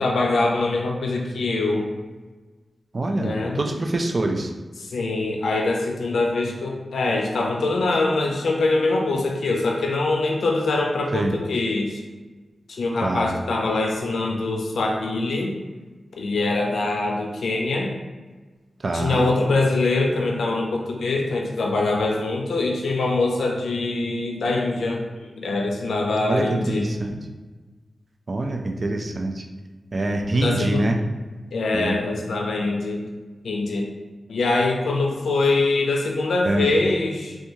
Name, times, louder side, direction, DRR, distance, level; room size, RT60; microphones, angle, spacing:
voice 1, 0.0-1.9 3.2-3.6 4.8-12.0 12.7-15.5 16.2-17.9 18.9-26.9 30.3-30.9 31.5-33.0 33.4-33.9 34.3-37.4, left 2 dB, 90° left, 0 dB, 0.4 m, -23 dB
voice 2, 2.9-4.5 11.1-11.4 13.0-13.3 18.8-19.3 26.2-27.1 28.3-29.4 29.9-31.0 31.7-32.0 36.4-36.7, right 2 dB, 50° right, 3 dB, 0.3 m, -24 dB
2.8 x 2.3 x 2.6 m, 1.3 s
cardioid pair, 50°, 0 cm